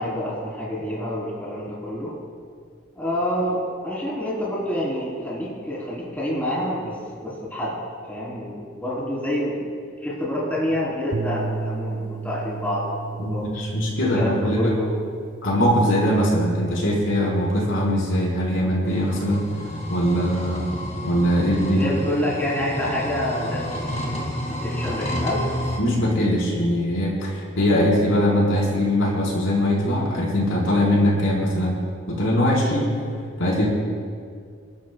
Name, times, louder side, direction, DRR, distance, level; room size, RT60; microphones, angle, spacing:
voice 1, 0.0-2.1 2.9-7.8 8.1-9.7 10.0-13.5 14.0-15.0 21.7-25.4, left 1 dB, 10° left, -7 dB, 3.6 m, -28 dB
sound 1, 11.1-19.5, right 4 dB, 40° right, 0.4 m, -35 dB
voice 2, 13.2-14.7 15.4-19.5 19.9-20.8 21.0-21.9 25.8-31.8 32.1-32.9 33.4-33.7, equal, 80° left, -4 dB, 4.3 m, -21 dB
sound 2, 18.9-25.8, left 1 dB, 35° left, 2.3 m, -30 dB
29.5 x 12.5 x 2.3 m, 2.1 s
head